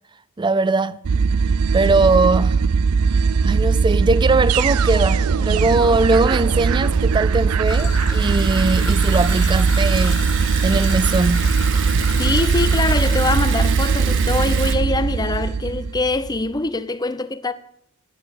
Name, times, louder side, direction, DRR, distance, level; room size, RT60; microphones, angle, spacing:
voice 1, 0.4-1.0 1.7-2.7 3.1-10.3 10.6-11.7, right 3 dB, 20° right, 0.4 m, -20 dB
sound 1, 1.0-16.4, right 5 dB, 80° right, 0.5 m, -19 dB
Liquid, 6.7-14.7, right 7 dB, 60° right, 1.5 m, -30 dB
Traffic noise roadway noise / Trickle dribble, 7.6-13.4, left 6 dB, 85° left, 0.9 m, -34 dB
voice 2, 12.2-17.5, left 2 dB, 20° left, 0.7 m, -23 dB
12.5 x 9.3 x 8.3 m
head